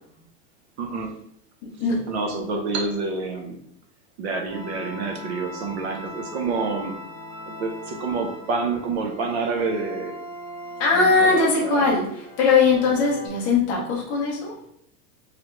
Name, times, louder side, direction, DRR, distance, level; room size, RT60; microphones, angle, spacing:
voice 1, 0.8-1.2 2.1-3.6 4.2-7.0 7.6-10.1 10.9-11.9, right 4 dB, 45° right, 3 dB, 0.7 m, -28 dB
voice 2, 1.6-2.0 10.8-12.0 12.4-14.5, left 4 dB, 15° left, -3 dB, 0.5 m, -20 dB
sound 1, 4.5-13.3, equal, 10° right, 1.3 m, -39 dB
3.5 x 3.3 x 3.0 m, 0.69 s
supercardioid pair, 175°, 47 cm